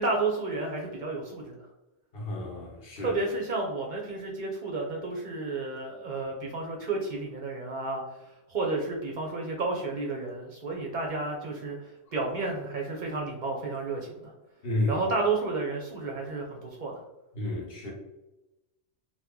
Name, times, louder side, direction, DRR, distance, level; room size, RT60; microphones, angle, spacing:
voice 1, 0.0-1.7 3.0-8.0 8.5-11.8 12.1-14.3 14.9-16.9, right 3 dB, 55° right, -1 dB, 0.6 m, -31 dB
voice 2, 2.1-3.2 14.6-15.0 17.3-17.9, left 1 dB, 65° left, -2 dB, 1.0 m, -31 dB
2.8 x 2.2 x 3.5 m, 0.98 s
omnidirectional pair, 1.1 m